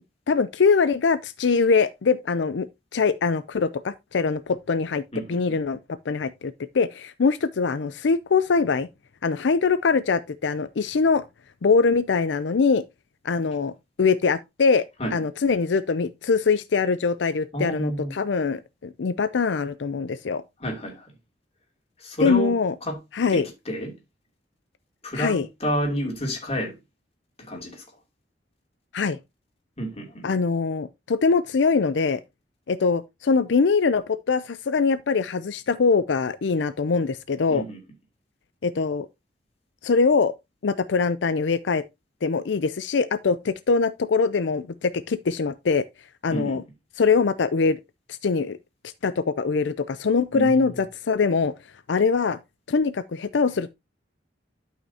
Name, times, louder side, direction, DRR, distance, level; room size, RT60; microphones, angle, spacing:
voice 1, 0.3-2.7 2.9-5.0 5.3-8.9 9.2-11.2 11.6-12.8 13.2-13.7 14.0-14.8 15.1-20.4 22.2-22.7 23.1-23.5 25.1-25.5 28.9-29.2 30.2-32.2 32.7-37.6 38.6-39.1 39.8-40.3 40.6-41.8 42.2-45.8 46.2-46.6 47.0-47.8 48.2-48.6 49.0-51.5 51.9-52.4 52.7-53.7, left 4 dB, 85° left, 0.5 m, -23 dB
voice 2, 5.1-5.6 15.0-15.1 17.5-18.1 20.6-21.0 22.0-22.5 22.8-23.0 23.3-23.9 25.0-26.7 27.4-27.8 29.8-30.3 37.5-37.8 46.3-46.6 50.3-50.8, equal, 35° left, 2.9 m, -30 dB
12.0 x 5.7 x 2.8 m
head